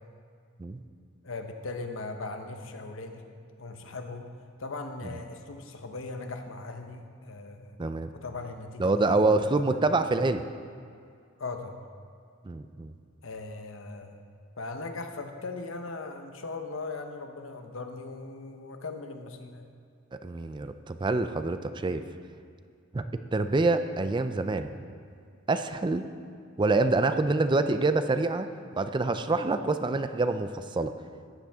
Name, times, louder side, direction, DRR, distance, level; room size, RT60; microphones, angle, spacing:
voice 1, 1.2-3.2 3.6-4.3 4.6-7.8 8.1-9.8 11.4-11.8 13.2-14.2 14.6-19.7, left 3 dB, 75° left, 5 dB, 1.0 m, -39 dB
voice 2, 7.8-8.1 8.8-10.4 12.5-12.9 20.2-22.0 22.9-23.1 23.3-24.7 25.5-26.0 26.6-28.5 28.8-30.9, right 3 dB, 25° right, 9 dB, 0.4 m, -26 dB
14.5 x 10.0 x 3.6 m, 2.3 s
head